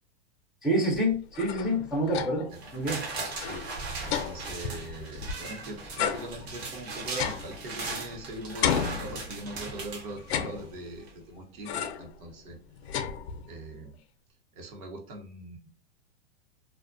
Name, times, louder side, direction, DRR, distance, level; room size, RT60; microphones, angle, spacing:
voice 1, 0.6-3.0, equal, ahead, -1 dB, 0.3 m, -27 dB
sound 1, 1.1-2.6 2.9-3.0 3.3-5.5 6.0-8.2 8.6-9.7 10.2-11.1 11.7-12.2 12.5-13.7, left 8 dB, 85° left, 0.5 m, -33 dB
sound 2, 2.5-10.7 11.1-11.2, right 3 dB, 80° right, 1.1 m, -38 dB
voice 2, 3.3-3.7 4.0-12.6 13.5-14.0 14.5-15.7, right 1 dB, 55° right, 1 dB, 0.9 m, -41 dB
2.5 x 2.1 x 2.4 m, 0.40 s
supercardioid pair, 145°, 31 cm